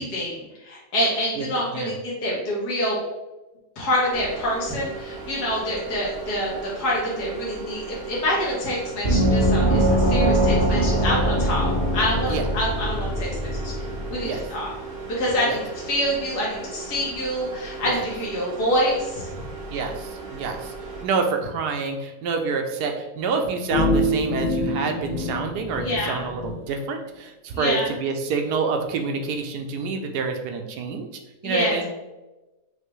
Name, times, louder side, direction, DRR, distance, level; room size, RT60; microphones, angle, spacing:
voice 1, 0.0-3.0 3.8-13.7 14.1-14.7 15.1-15.6 15.9-19.3 25.8-26.3 27.5-27.9 31.4-31.8, equal, 75° left, -5 dB, 1.7 m, -26 dB
sound 1, 4.1-21.0, right 4 dB, 55° right, 1.6 m, -37 dB
Gong, 9.0-14.3, right 1 dB, 40° right, 1.0 m, -22 dB
voice 2, 19.7-20.7 21.0-31.1 31.4-31.8, right 4 dB, 85° right, 4 dB, 1.2 m, -27 dB
sound 2, 23.7-26.6, left 1 dB, 50° left, 0.9 m, -25 dB
5.7 x 2.7 x 3.1 m, 1.1 s
omnidirectional pair, 1.7 m